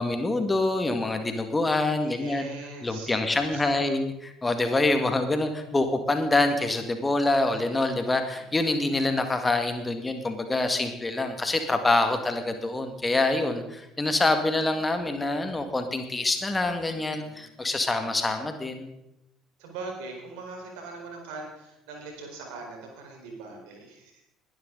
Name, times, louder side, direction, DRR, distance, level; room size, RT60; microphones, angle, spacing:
voice 1, 0.0-2.5 2.8-4.1 4.4-18.9, left 2 dB, 20° left, 7 dB, 2.0 m, -26 dB
voice 2, 2.0-3.9 8.1-8.4 17.1-17.4 19.6-24.2, right 3 dB, 65° right, 1 dB, 4.6 m, -41 dB
21.5 x 11.5 x 4.0 m, 0.86 s
figure-of-eight pair, 55°, 0 cm